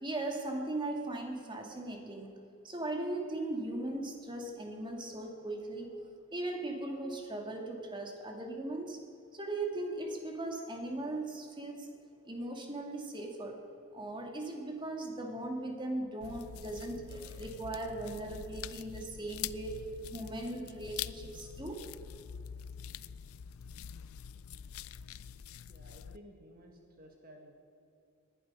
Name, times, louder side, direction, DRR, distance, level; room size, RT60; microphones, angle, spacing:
voice 1, 0.0-2.4 2.6-6.0 6.3-9.0 9.3-12.0 12.2-13.6 13.9-19.8 20.1-21.9, right 2 dB, 25° right, 2 dB, 2.0 m, -38 dB
sound 1, 16.2-26.2, left 9 dB, 90° left, 0.4 m, -45 dB
voice 2, 25.7-27.5, equal, 45° right, 2 dB, 1.7 m, -55 dB
20.0 x 11.5 x 5.5 m, 2.7 s
head